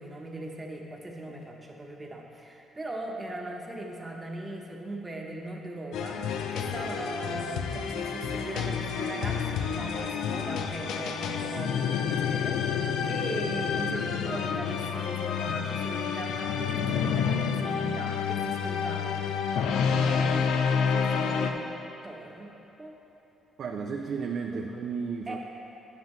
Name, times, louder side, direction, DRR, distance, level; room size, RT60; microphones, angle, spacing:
voice 1, 0.0-21.7 22.0-22.5 22.8-23.0 25.3-25.4, right 1 dB, 20° right, 0 dB, 1.0 m, -39 dB
sound 1, 5.9-21.5, left 7 dB, 85° left, 0.4 m, -29 dB
voice 2, 23.6-25.4, right 5 dB, 65° right, 2 dB, 0.4 m, -33 dB
9.2 x 7.5 x 3.1 m, 3.0 s
cardioid pair, 90°, 0 cm